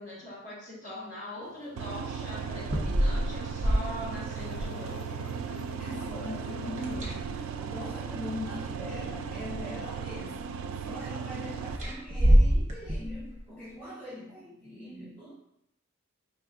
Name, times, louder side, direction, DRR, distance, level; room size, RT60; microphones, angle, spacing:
voice 1, 0.0-5.2, left 1 dB, 35° left, -7 dB, 1.5 m, -42 dB
sound 1, 1.4-7.1, left 4 dB, 55° left, 0.3 m, -49 dB
sound 2, 1.8-11.8, right 6 dB, 70° right, 0.3 m, -37 dB
sound 3, 2.5-5.0 6.7-7.6 8.7-8.8 9.3-10.2 11.7-13.4, equal, 30° right, 0.7 m, -26 dB
voice 2, 5.8-15.3, left 1 dB, 10° left, -10 dB, 1.0 m, -41 dB
4.9 x 3.2 x 2.5 m, 0.76 s
head